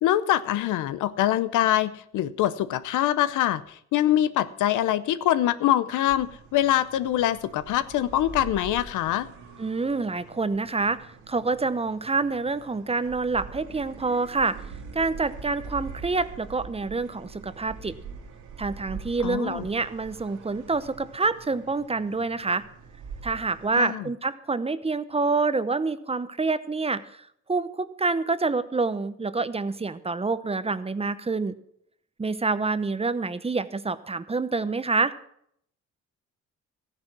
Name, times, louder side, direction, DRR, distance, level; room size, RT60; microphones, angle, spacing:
voice 1, 0.0-9.3 19.2-19.7 23.8-24.1, left 12 dB, 85° left, 15 dB, 0.7 m, -24 dB
sound 1, 6.1-23.7, right 5 dB, 90° right, 2.2 m, -44 dB
voice 2, 9.6-14.6 14.9-17.9 18.6-22.6 23.2-27.0 27.5-31.6 32.2-35.1, right 3 dB, 20° right, 14 dB, 0.8 m, -27 dB
14.0 x 9.9 x 6.0 m, 0.69 s
cardioid pair, 90°, 30 cm